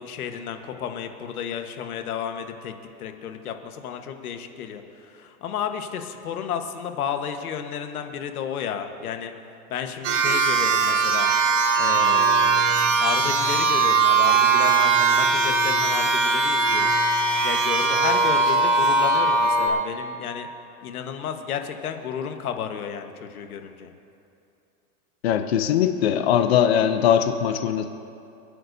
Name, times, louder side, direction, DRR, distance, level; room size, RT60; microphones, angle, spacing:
voice 1, 0.0-2.7 3.0-9.3 9.7-11.3 11.8-12.7 13.0-16.9 17.4-20.5 20.8-23.9, left 8 dB, 70° left, 6 dB, 1.4 m, -32 dB
sound 1, 10.0-19.7, right 4 dB, 55° right, 1.8 m, -20 dB
voice 2, 25.2-27.8, left 9 dB, 45° left, 8 dB, 0.6 m, -21 dB
29.0 x 9.8 x 2.7 m, 2.6 s
supercardioid pair, 180°, 45 cm